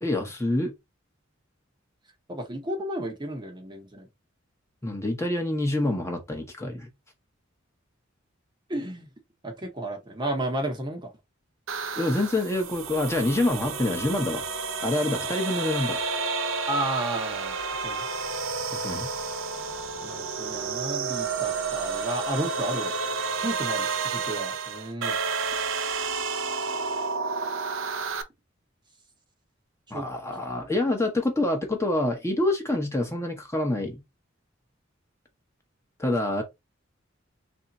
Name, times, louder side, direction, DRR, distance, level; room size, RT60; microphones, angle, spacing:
voice 1, 0.0-0.7 4.8-6.9 12.0-14.4 14.8-16.0 18.7-19.1 29.9-34.0 36.0-36.4, left 1 dB, 15° left, 0.8 m, -26 dB
voice 2, 2.3-4.1 8.7-9.1 9.4-11.1 16.7-17.6 17.8-18.0 20.0-22.9 23.4-25.2 29.9-30.1, right 1 dB, 20° right, 0.8 m, -32 dB
sound 1, 11.7-28.2, right 4 dB, 70° right, 0.6 m, -30 dB
3.3 x 2.6 x 4.0 m
head